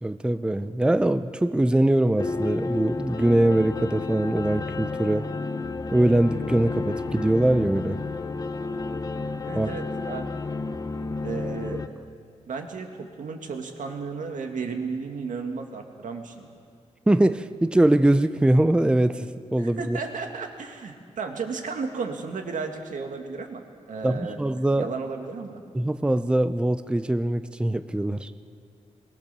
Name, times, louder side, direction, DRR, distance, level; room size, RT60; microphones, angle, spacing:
voice 1, 0.0-5.2 5.9-8.0 9.6-9.7 17.1-20.0 24.0-24.9 25.7-28.3, right 1 dB, 5° right, 11 dB, 0.5 m, -22 dB
sound 1, 2.2-11.9, left 3 dB, 30° left, 0.9 m, -31 dB
voice 2, 9.5-10.3 11.2-11.8 12.5-16.5 19.6-24.4 24.7-25.6 28.1-28.2, right 5 dB, 85° right, 4 dB, 2.0 m, -34 dB
22.5 x 19.0 x 6.8 m, 2.2 s
wide cardioid pair, 150°, 13 cm